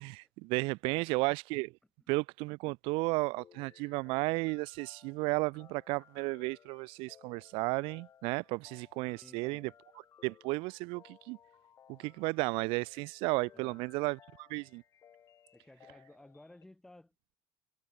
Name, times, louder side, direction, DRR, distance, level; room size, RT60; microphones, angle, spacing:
voice 1, 0.0-1.7 2.1-9.7 10.2-11.4 11.9-14.8, right 26 dB, 70° right, 0.4 m, -33 dB
sound 1, 3.3-16.6, left 9 dB, 30° left, 4.2 m, -61 dB
voice 2, 9.1-9.7 13.5-13.8 15.5-17.4, left 1 dB, 5° left, 1.5 m, -56 dB
cardioid pair, 170°, 9 cm